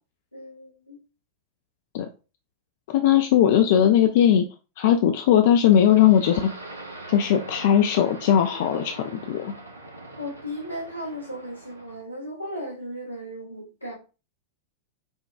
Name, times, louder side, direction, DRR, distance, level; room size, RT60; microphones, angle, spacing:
voice 1, 0.3-1.0 10.2-14.0, equal, 85° left, 1.2 m, -36 dB
voice 2, 2.9-4.5 4.8-6.5 7.1-9.5, left 10 dB, 50° left, 0.3 m, -19 dB
sound 1, 5.7-12.0, right 2 dB, 80° right, 0.6 m, -42 dB
5.2 x 2.2 x 2.4 m
figure-of-eight pair, 90°, 0 cm